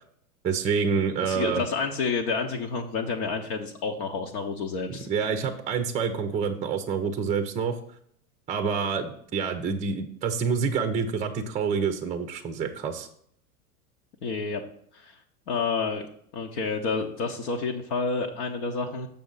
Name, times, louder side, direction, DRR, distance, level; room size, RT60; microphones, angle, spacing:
voice 1, 0.4-1.6 4.9-7.8 8.5-13.1, right 6 dB, 15° right, 7 dB, 0.6 m, -27 dB
voice 2, 1.2-5.1 14.2-14.6 14.9-15.2 15.5-16.1 16.3-19.1, left 4 dB, 60° left, 2 dB, 1.0 m, -29 dB
6.9 x 6.1 x 3.9 m, 0.66 s
hypercardioid pair, 100°, 45 cm